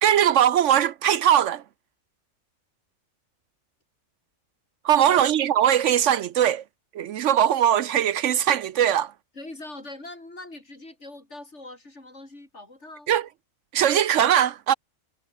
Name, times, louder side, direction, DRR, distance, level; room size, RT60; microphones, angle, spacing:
voice 1, 0.0-1.6 4.8-6.6 6.9-9.1 13.1-13.3 13.7-14.7, right 10 dB, 70° right, 0.9 m, -20 dB
voice 2, 9.3-13.1, left 2 dB, 60° left, 5.6 m, -42 dB
omnidirectional pair, 1.4 m